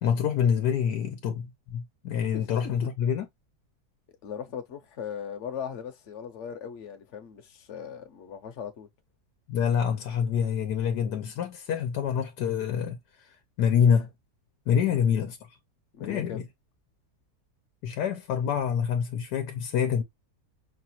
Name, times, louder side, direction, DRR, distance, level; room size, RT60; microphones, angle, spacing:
voice 1, 0.0-3.3 9.5-13.3 13.6-14.1 14.7-15.4 16.0-16.4 17.8-20.0, left 7 dB, 90° left, 1.4 m, -26 dB
voice 2, 2.3-2.8 4.2-8.9 14.7-15.0 15.9-16.4, left 7 dB, 55° left, 1.1 m, -39 dB
5.7 x 2.4 x 2.8 m
omnidirectional pair, 1.7 m